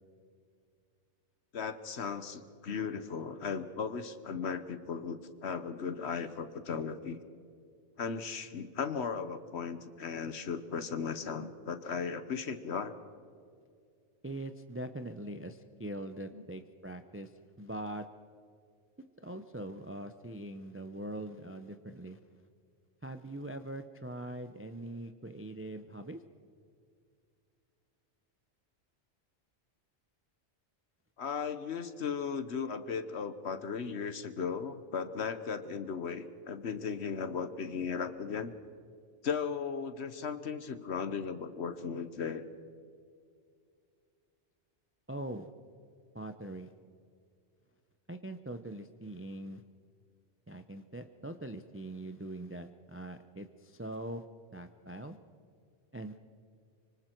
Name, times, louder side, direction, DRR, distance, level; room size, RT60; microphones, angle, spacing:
voice 1, 1.5-7.2 8.0-12.9 16.3-16.4 31.2-38.5 39.2-42.4, left 6 dB, 65° left, 11 dB, 1.2 m, -36 dB
voice 2, 14.2-17.3 17.6-18.1 19.2-22.2 23.0-26.2 45.1-45.5 46.1-46.7 48.1-49.6 50.5-54.2 54.5-55.2 55.9-56.2, right 1 dB, 15° right, 8 dB, 0.6 m, -42 dB
25.5 x 24.5 x 4.5 m, 2.3 s
omnidirectional pair, 1.2 m